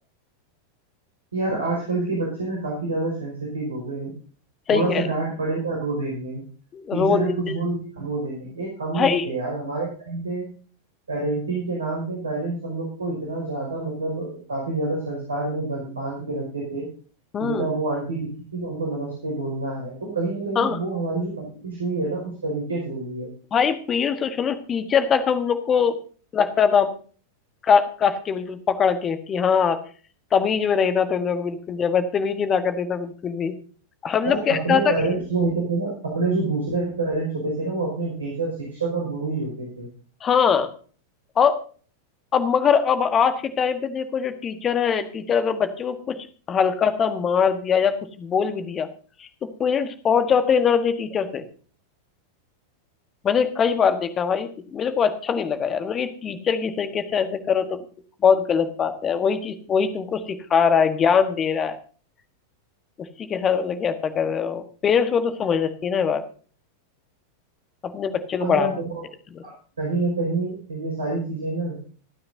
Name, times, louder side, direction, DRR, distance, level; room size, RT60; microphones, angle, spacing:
voice 1, 1.3-4.1 4.7-6.4 6.9-10.5 11.1-16.9 17.4-18.3 18.5-23.3 34.2-39.9 68.4-68.9 69.4-71.8, right 3 dB, 70° right, -2 dB, 5.4 m, -27 dB
voice 2, 4.7-5.0 6.7-7.6 8.9-9.2 17.3-17.7 20.5-20.8 23.5-26.0 26.3-26.9 27.6-29.8 30.3-33.6 34.0-34.9 40.2-40.7 41.3-41.6 42.3-46.2 46.5-48.9 49.2-49.3 49.6-51.4 53.2-57.8 58.2-61.8 63.0-66.2 67.8-68.7 69.3-69.4, left 6 dB, 25° left, 9 dB, 1.4 m, -22 dB
26.5 x 9.5 x 2.7 m, 0.41 s
figure-of-eight pair, 90°, 0 cm